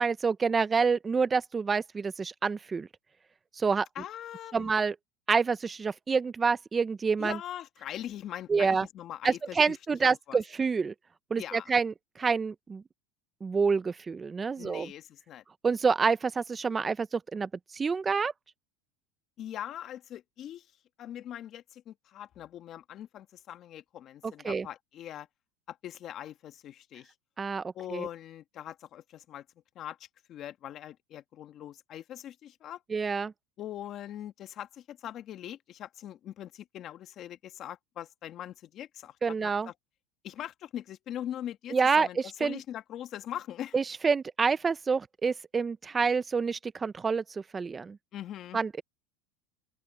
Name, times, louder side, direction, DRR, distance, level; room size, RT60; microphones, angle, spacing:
voice 1, 0.0-2.9 3.6-3.9 4.5-4.9 5.3-7.4 8.5-8.9 9.2-10.9 11.3-12.8 13.4-14.9 15.6-18.3 24.4-24.7 27.4-28.1 32.9-33.3 39.2-39.7 41.7-42.1 42.4-42.6 43.7-48.0 48.5-48.8, right 5 dB, 20° right, 0.5 m, -27 dB
voice 2, 3.9-4.7 7.2-9.8 10.0-10.4 11.4-11.7 14.6-15.4 19.4-20.7 21.0-25.3 25.7-27.1 27.7-29.4 29.7-32.8 33.6-39.7 40.2-43.7 48.1-48.6, left 11 dB, 40° left, 1.6 m, -41 dB
open air
supercardioid pair, 135°, 0 cm